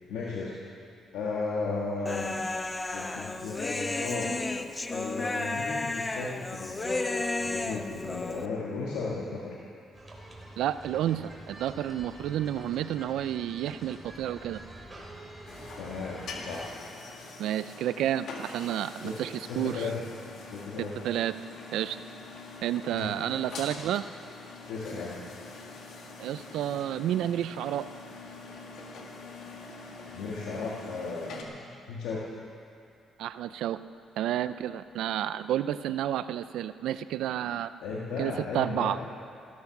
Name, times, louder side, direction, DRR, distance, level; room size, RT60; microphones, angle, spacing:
voice 1, 0.1-0.6 1.1-2.4 2.9-4.4 4.9-9.6 15.8-16.7 19.0-20.0 20.5-21.0 22.9-23.1 24.7-25.2 30.1-32.3 37.8-39.0, left 4 dB, 90° left, -5 dB, 1.7 m, -35 dB
Human voice, 2.1-8.5, left 2 dB, 20° left, 0.7 m, -32 dB
sound 1, 9.9-16.7, right 1 dB, 15° right, 2.9 m, -47 dB
voice 2, 10.6-14.6 17.4-19.9 21.0-21.3 21.7-22.0 22.6-24.0 26.2-27.9 33.2-33.8 34.2-37.7 38.2-39.0, right 11 dB, 85° right, 13 dB, 0.5 m, -30 dB
sound 2, 15.5-31.4, left 3 dB, 70° left, 1.9 m, -44 dB
15.0 x 13.0 x 6.0 m, 2.6 s
cardioid pair, 90°, 0 cm